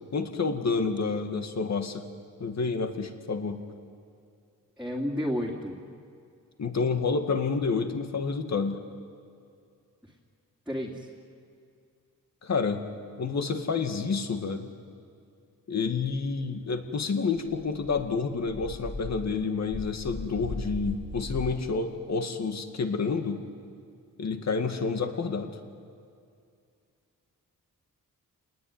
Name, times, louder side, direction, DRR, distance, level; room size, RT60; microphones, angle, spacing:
voice 1, 0.1-2.0 2.4-3.6 6.6-8.8 12.4-12.8 13.2-14.7 15.7-23.4 24.2-25.6, left 4 dB, 55° left, 6 dB, 2.1 m, -29 dB
voice 2, 4.8-5.8 10.7-11.1, equal, 5° right, -4 dB, 2.7 m, -31 dB
Dog, 16.9-17.0 17.4-21.5, left 2 dB, 30° left, 5.7 m, -38 dB
29.5 x 19.5 x 9.6 m, 2.4 s
wide cardioid pair, 135°, 33 cm